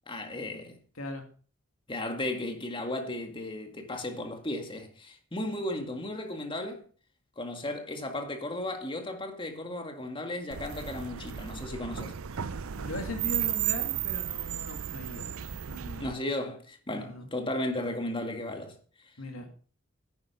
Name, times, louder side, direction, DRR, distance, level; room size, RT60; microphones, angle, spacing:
voice 1, 0.1-0.8 1.9-6.8 7.4-12.2 16.0-18.8, left 1 dB, 25° left, 2.0 m, -35 dB
voice 2, 0.9-1.3 12.7-15.3 15.7-16.1 16.9-17.3 19.2-19.5, left 1 dB, 85° left, 2.5 m, -39 dB
sound 1, 10.5-16.1, right 10 dB, 85° right, 0.6 m, -34 dB
11.0 x 9.5 x 5.4 m
head